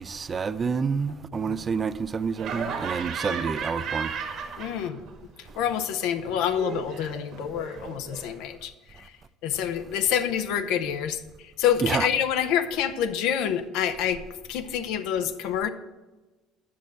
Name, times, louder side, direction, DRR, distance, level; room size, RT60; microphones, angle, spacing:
voice 1, 0.0-4.1 11.8-12.1, right 5 dB, 35° right, 0.5 m, -28 dB
Laughter, 2.4-5.1 5.4-8.3, right 6 dB, 55° right, 1.5 m, -35 dB
voice 2, 4.6-5.0 5.6-9.0 9.4-11.2 11.6-14.2 14.5-15.7, left 9 dB, 65° left, 0.6 m, -27 dB
8.5 x 6.2 x 5.7 m
hypercardioid pair, 60°, 0 cm